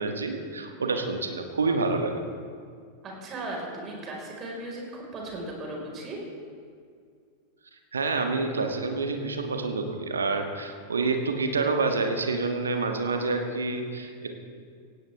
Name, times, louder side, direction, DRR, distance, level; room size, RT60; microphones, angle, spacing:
voice 1, 0.0-2.2 7.9-14.4, right 3 dB, 70° right, 5 dB, 1.6 m, -28 dB
voice 2, 3.0-6.2, right 1 dB, 30° right, -1 dB, 4.7 m, -37 dB
17.0 x 17.0 x 3.5 m, 2.2 s
figure-of-eight pair, 90°, 0 cm